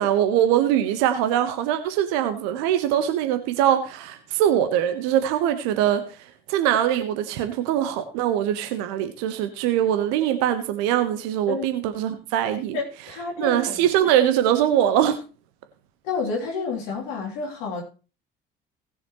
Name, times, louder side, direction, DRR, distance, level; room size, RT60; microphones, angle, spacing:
voice 1, 0.0-6.0 6.5-12.8 13.4-15.2, right 11 dB, 65° right, 1.3 m, -22 dB
voice 2, 12.7-13.9 16.0-17.8, left 4 dB, 65° left, 3.3 m, -30 dB
18.5 x 7.1 x 3.1 m
figure-of-eight pair, 50°, 30 cm